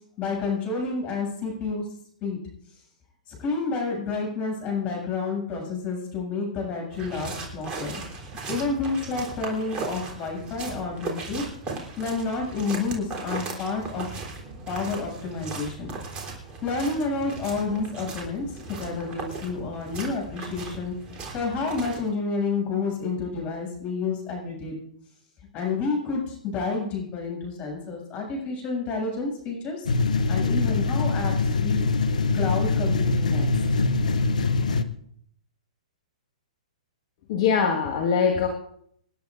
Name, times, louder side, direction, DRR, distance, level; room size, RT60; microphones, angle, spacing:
voice 1, 0.2-1.9 2.2-2.4 3.3-8.0 8.5-11.4 12.0-14.1 14.7-15.9 16.6-20.9 21.3-24.7 25.5-31.9 32.3-33.5, left 4 dB, 30° left, 1 dB, 7.3 m, -29 dB
sound 1, 6.9-22.1, right 3 dB, 25° right, 3.5 m, -37 dB
sound 2, 29.9-34.8, left 3 dB, 80° left, 0.9 m, -23 dB
voice 2, 37.3-38.5, left 6 dB, 50° left, 2 dB, 1.6 m, -22 dB
27.5 x 10.5 x 2.6 m, 0.67 s
hypercardioid pair, 125°, 4 cm